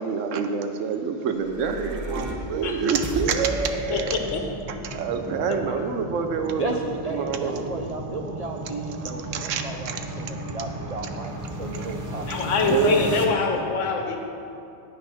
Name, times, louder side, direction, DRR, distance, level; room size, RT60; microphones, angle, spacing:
voice 1, 0.0-4.2 4.8-7.7 9.3-10.0 12.6-13.0, right 6 dB, 85° right, 7 dB, 1.0 m, -27 dB
sound 1, 1.2-13.3, right 1 dB, 20° right, 0.5 m, -34 dB
voice 2, 2.6-3.1 3.9-4.5 5.5-5.9 12.2-14.2, left 5 dB, 85° left, 3 dB, 1.3 m, -25 dB
voice 3, 6.6-12.8, right 3 dB, 70° right, 3 dB, 0.3 m, -34 dB
8.6 x 6.1 x 5.5 m, 2.7 s
omnidirectional pair, 1.3 m